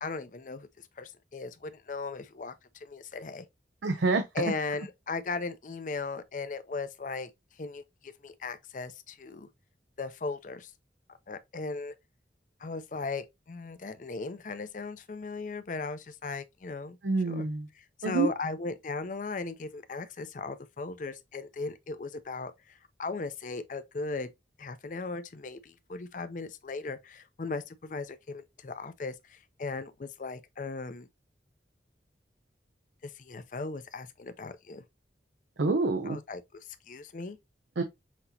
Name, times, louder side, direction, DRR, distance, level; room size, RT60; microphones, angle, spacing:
voice 1, 0.0-0.7 1.0-2.5 2.8-3.5 4.3-7.3 7.6-9.5 10.0-10.7 11.3-11.9 12.6-17.0 17.3-17.5 17.8-24.3 24.6-31.1 33.0-34.8 36.1-36.4 36.9-37.4, left 3 dB, 45° left, 0.5 m, -37 dB
voice 2, 3.8-4.2 17.0-17.7 18.0-18.3 35.6-36.2 37.8-37.9, right 3 dB, 90° right, 0.6 m, -27 dB
5.9 x 2.9 x 2.7 m
head